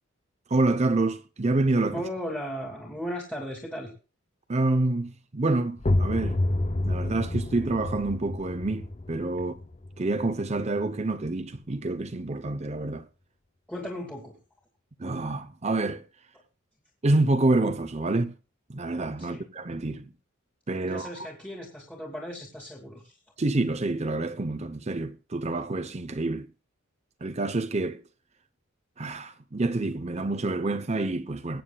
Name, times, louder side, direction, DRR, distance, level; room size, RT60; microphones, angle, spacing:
voice 1, 0.5-2.0 4.5-6.4 6.8-9.6 10.0-13.1 15.0-16.0 17.0-18.3 18.7-20.1 20.7-21.3 23.4-26.5 27.2-28.0 29.0-31.6, right 2 dB, 30° right, 0.7 m, -27 dB
voice 2, 1.9-3.9 13.7-14.4 19.2-19.4 20.8-23.2, equal, 5° left, 2.4 m, -36 dB
sound 1, 5.8-11.3, left 1 dB, 30° left, 0.6 m, -29 dB
21.5 x 9.3 x 2.3 m
head